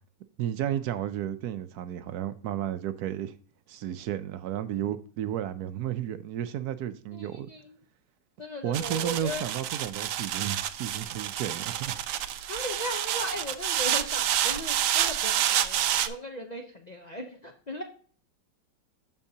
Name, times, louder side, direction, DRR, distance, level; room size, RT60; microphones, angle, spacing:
voice 1, 0.4-3.3 3.7-7.5 8.6-12.0, right 11 dB, 70° right, 1.0 m, -33 dB
voice 2, 7.1-7.7 8.4-9.5 12.5-17.8, left 1 dB, 60° left, 0.4 m, -37 dB
sound 1, 8.7-16.1, right 11 dB, 90° right, 0.7 m, -29 dB
13.0 x 4.4 x 2.7 m
omnidirectional pair, 2.0 m